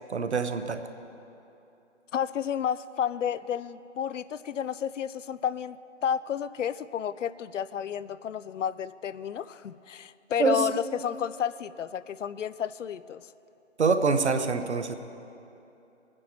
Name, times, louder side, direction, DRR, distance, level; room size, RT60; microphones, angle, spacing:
voice 1, 0.1-0.8 10.4-10.7 13.8-14.9, right 4 dB, 65° right, 9 dB, 0.8 m, -25 dB
voice 2, 2.1-5.8 6.0-13.2, left 9 dB, 90° left, 17 dB, 0.5 m, -31 dB
22.5 x 9.7 x 2.8 m, 2.8 s
hypercardioid pair, 180°, 36 cm